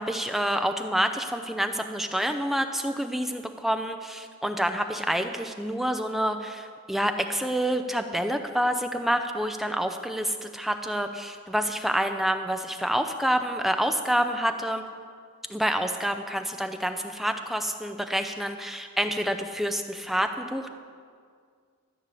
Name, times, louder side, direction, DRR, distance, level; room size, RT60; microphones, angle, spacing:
voice 1, 0.0-14.8 15.5-20.7, equal, ahead, 6 dB, 0.4 m, -28 dB
13.5 x 5.5 x 8.3 m, 2.1 s
head